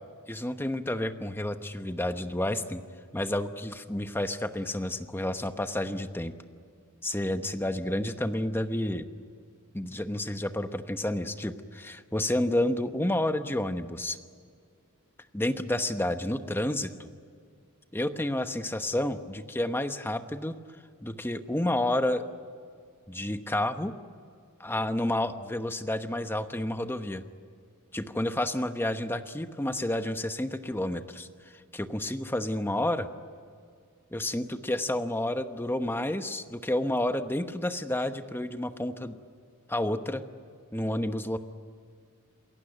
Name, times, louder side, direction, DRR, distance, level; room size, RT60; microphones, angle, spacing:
voice 1, 0.3-2.8 3.1-6.3 7.0-9.1 9.7-14.2 15.3-17.1 17.9-20.6 21.0-22.2 23.1-23.9 24.6-27.2 27.9-33.1 34.1-39.2 39.7-40.2 40.7-41.4, left 1 dB, 10° left, 8 dB, 1.0 m, -30 dB
27.5 x 15.5 x 9.3 m, 2.2 s
head